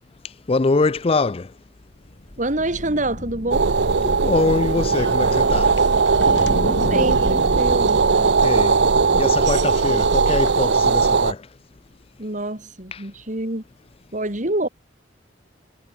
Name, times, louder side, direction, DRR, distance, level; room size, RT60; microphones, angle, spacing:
voice 1, 0.5-1.4 4.2-5.7 8.4-8.8 9.1-11.4, left 3 dB, 30° left, 0.5 m, -22 dB
sound 1, 1.9-10.4, left 1 dB, 50° left, 3.2 m, -33 dB
voice 2, 2.4-3.7 6.7-8.1 12.2-13.6 14.1-14.7, right 1 dB, 45° right, 3.3 m, -26 dB
sound 2, 3.5-11.3, right 4 dB, 65° right, 0.7 m, -18 dB
sound 3, 5.5-6.8 7.1-7.2 7.5-7.7 8.1-9.2 9.5-9.6 9.7-11.0 11.9-12.0, left 5 dB, 70° left, 5.4 m, -46 dB
head